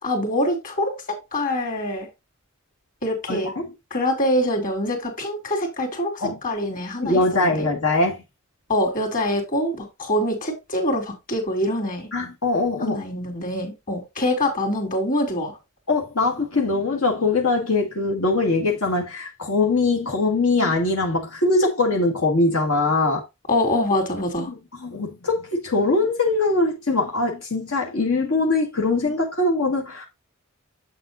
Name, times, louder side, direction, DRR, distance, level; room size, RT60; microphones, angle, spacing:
voice 1, 0.0-2.1 3.0-3.5 3.9-7.7 8.7-12.1 12.8-15.6 23.5-24.5, left 1 dB, 40° left, 3.2 m, -25 dB
voice 2, 3.3-3.7 6.2-6.4 7.0-8.2 12.1-13.0 15.9-23.2 24.5-24.6 24.8-30.1, left 3 dB, 80° left, 2.2 m, -22 dB
8.0 x 7.7 x 2.5 m
head